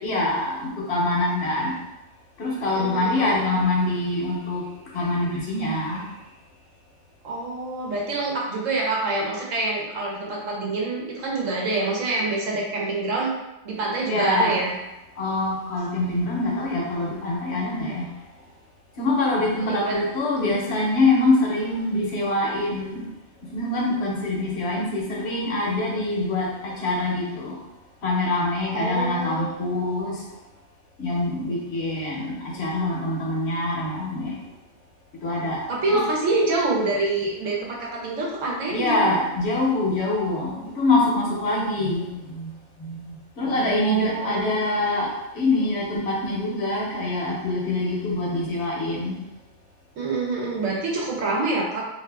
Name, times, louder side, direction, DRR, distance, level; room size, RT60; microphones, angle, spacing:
voice 1, 0.0-1.7 2.4-4.6 4.9-6.1 14.1-14.6 15.2-18.1 19.0-23.0 23.5-27.6 28.0-30.3 31.0-34.4 35.2-36.0 38.7-42.5 42.8-49.2, left 2 dB, 60° left, -3 dB, 0.9 m, -24 dB
voice 2, 2.7-3.4 7.2-13.3 13.6-14.7 19.6-20.0 20.4-20.6 28.7-29.6 35.7-39.1 43.4-44.6 49.9-51.8, right 2 dB, 75° right, -2 dB, 1.1 m, -26 dB
2.6 x 2.4 x 3.2 m, 0.95 s
omnidirectional pair, 1.4 m